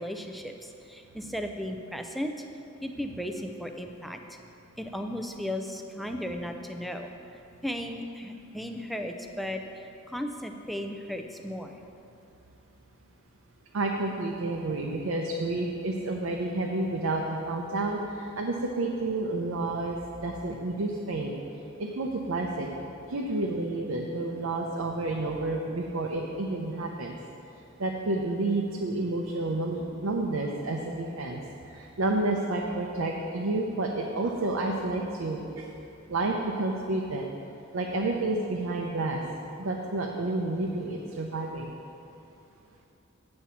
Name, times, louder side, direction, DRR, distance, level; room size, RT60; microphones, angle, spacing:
voice 1, 0.0-2.4 2.8-4.2 4.8-7.1 7.6-11.8, equal, ahead, 4 dB, 0.4 m, -35 dB
voice 2, 13.7-21.4 21.8-22.7 23.1-27.2 27.8-35.7 36.1-37.3 37.7-39.2 39.6-41.7, right 2 dB, 90° right, 0 dB, 0.6 m, -30 dB
8.5 x 4.4 x 7.0 m, 2.8 s
head